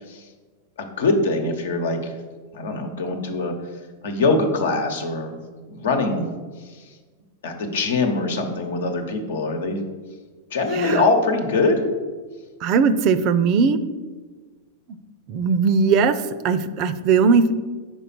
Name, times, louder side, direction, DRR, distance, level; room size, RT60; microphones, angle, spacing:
voice 1, 0.8-2.1 2.5-3.5 4.0-5.4 5.7-6.3 7.4-9.8 10.5-11.9, left 3 dB, 80° left, 5 dB, 1.0 m, -23 dB
voice 2, 12.6-13.8 15.3-17.5, right 5 dB, 45° right, 13 dB, 0.5 m, -19 dB
5.3 x 4.4 x 6.0 m, 1.4 s
hypercardioid pair, 115°, 0 cm